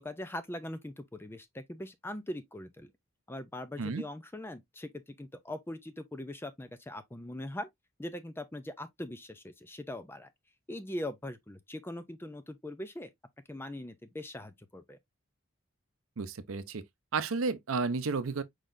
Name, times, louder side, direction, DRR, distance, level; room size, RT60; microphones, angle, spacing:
voice 1, 0.0-2.9 3.3-7.7 8.0-10.3 10.7-13.1 13.5-15.0, left 1 dB, 10° left, 0.5 m, -41 dB
voice 2, 16.2-16.8 17.1-18.4, right 4 dB, 75° right, 0.6 m, -32 dB
4.8 x 3.9 x 2.5 m
head